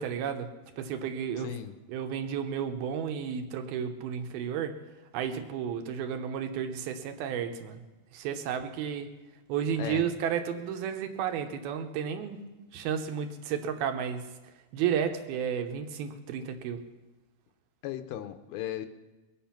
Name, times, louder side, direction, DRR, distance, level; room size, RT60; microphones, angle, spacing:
voice 1, 0.0-1.5 1.9-4.8 5.1-7.8 8.1-9.1 9.5-12.4 12.7-14.3 14.7-16.8, right 8 dB, 75° right, 6 dB, 2.7 m, -32 dB
voice 2, 1.4-1.7 9.8-10.0 17.8-18.9, left 11 dB, 85° left, 8 dB, 2.5 m, -36 dB
22.0 x 8.9 x 5.8 m, 1.1 s
omnidirectional pair, 4.6 m